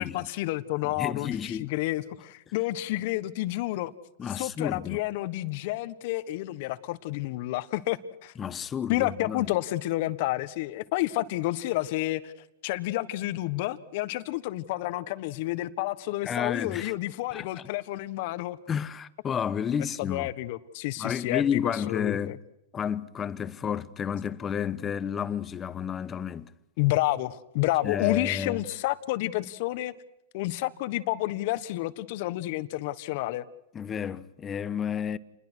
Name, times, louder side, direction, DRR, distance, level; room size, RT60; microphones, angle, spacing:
voice 1, 0.0-3.9 4.3-8.3 8.9-12.3 12.6-18.6 20.0-22.4 26.8-29.9 30.3-33.4, left 17 dB, 55° left, 1.4 m, -30 dB
voice 2, 0.8-1.7 4.2-5.0 8.4-9.5 16.2-16.9 17.3-17.6 18.7-20.3 21.0-22.3 22.7-26.5 27.8-28.6 33.7-35.2, left 8 dB, 20° left, 1.1 m, -31 dB
29.0 x 21.0 x 6.4 m
hypercardioid pair, 130°, 0 cm